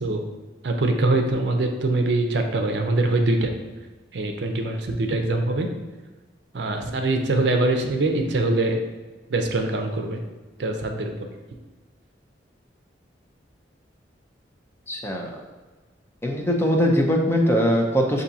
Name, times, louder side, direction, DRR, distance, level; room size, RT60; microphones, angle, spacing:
voice 1, 0.6-3.5 4.1-5.7 6.5-8.8 9.3-10.2 10.6-11.1, right 2 dB, 65° right, 4 dB, 0.5 m, -23 dB
voice 2, 14.9-15.4 16.2-18.2, equal, 15° left, 0 dB, 0.5 m, -21 dB
6.9 x 2.7 x 2.7 m, 1.3 s
head